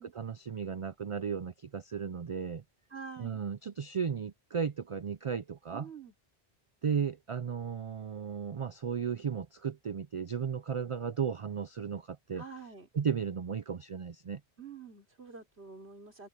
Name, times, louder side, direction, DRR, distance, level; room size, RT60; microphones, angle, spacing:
voice 1, 0.0-2.6 3.2-5.9 6.8-12.4 12.9-14.4, right 7 dB, 45° right, 0.4 m, -35 dB
voice 2, 2.9-3.4 5.7-6.1 12.3-12.9 14.6-16.3, right 5 dB, 80° right, 3.8 m, -47 dB
omnidirectional pair, 1.1 m